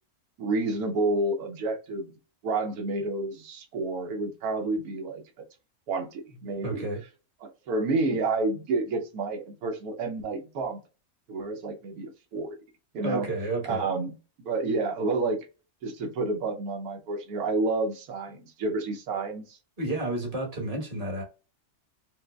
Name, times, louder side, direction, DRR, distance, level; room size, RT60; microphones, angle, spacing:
voice 1, 0.4-2.1 2.4-5.4 5.9-6.9 7.4-10.8 11.3-12.6 12.9-13.3 13.6-14.2 14.4-15.4 15.8-19.6, right 3 dB, 80° right, 1.3 m, -29 dB
voice 2, 6.6-7.0 13.0-13.8 19.8-21.2, right 2 dB, 30° right, 1.1 m, -31 dB
4.9 x 2.0 x 2.2 m
omnidirectional pair, 1.6 m